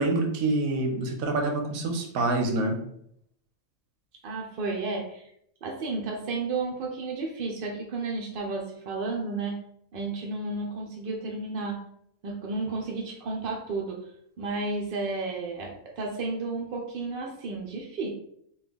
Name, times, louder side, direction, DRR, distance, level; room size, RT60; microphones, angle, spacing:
voice 1, 0.0-2.8, right 2 dB, 90° right, 3 dB, 1.0 m, -26 dB
voice 2, 4.2-5.3 5.6-9.6 9.9-11.8 12.2-14.0 14.4-18.1, right 3 dB, 65° right, 0 dB, 0.5 m, -32 dB
2.9 x 2.3 x 3.4 m, 0.72 s
omnidirectional pair, 1.4 m